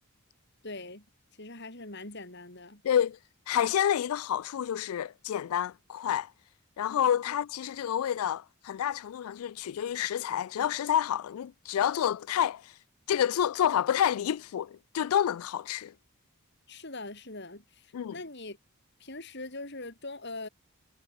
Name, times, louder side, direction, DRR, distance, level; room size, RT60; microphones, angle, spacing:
voice 1, 0.6-1.1 1.4-2.8 7.3-7.4 16.7-18.6 19.0-20.5, left 2 dB, 50° left, 7.5 m, -42 dB
voice 2, 2.8-3.2 3.5-6.3 6.8-15.9 17.9-18.1, left 9 dB, 80° left, 0.3 m, -29 dB
head